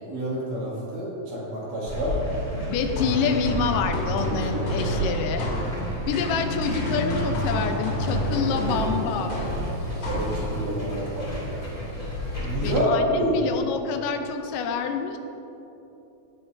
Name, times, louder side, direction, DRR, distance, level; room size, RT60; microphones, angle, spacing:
voice 1, 0.0-2.2 5.9-6.1 10.1-11.4 12.4-13.3, equal, 75° right, -6 dB, 3.8 m, -28 dB
sound 1, 1.9-12.8, left 1 dB, 15° left, 1.7 m, -33 dB
voice 2, 2.6-5.5 6.1-9.4 12.6-15.2, left 6 dB, 85° left, 6 dB, 2.3 m, -27 dB
sound 2, 3.0-10.8, right 1 dB, 50° left, 3.0 m, -29 dB
15.0 x 8.1 x 2.6 m, 3.0 s
omnidirectional pair, 3.8 m